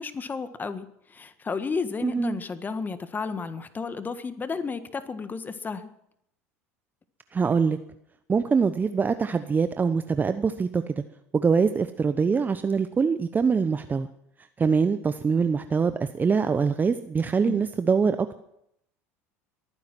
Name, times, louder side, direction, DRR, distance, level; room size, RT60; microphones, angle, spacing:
voice 1, 0.0-5.9 17.4-17.6, left 5 dB, 25° left, 11 dB, 1.5 m, -32 dB
voice 2, 2.0-2.4 7.3-7.8 8.3-11.0 11.3-14.1 14.6-18.4, right 5 dB, 25° right, 10 dB, 0.8 m, -24 dB
22.5 x 9.7 x 6.1 m, 0.77 s
hypercardioid pair, 75°, 7 cm